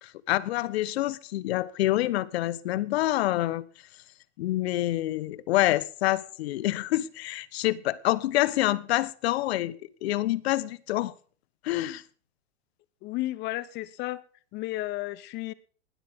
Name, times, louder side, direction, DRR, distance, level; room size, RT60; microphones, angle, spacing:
voice 1, 0.0-3.6 4.4-11.1 11.6-12.0, left 15 dB, 60° left, 1.2 m, -27 dB
voice 2, 13.0-14.2 14.5-15.5, left 17 dB, 30° left, 1.0 m, -33 dB
20.0 x 13.0 x 3.7 m
supercardioid pair, 150°, 35 cm